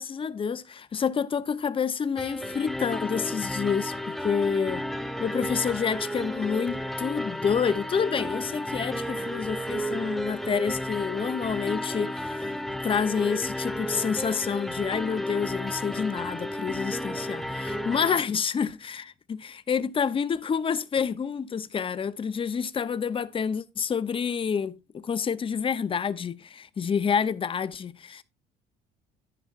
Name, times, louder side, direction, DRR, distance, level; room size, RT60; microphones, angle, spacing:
voice 1, 0.0-4.8 5.2-12.5 12.8-19.1 19.7-28.2, left 6 dB, 30° left, 0.8 m, -28 dB
sound 1, 2.2-18.2, left 1 dB, ahead, 1.2 m, -33 dB
10.5 x 10.0 x 2.6 m
cardioid pair, 110°, 17 cm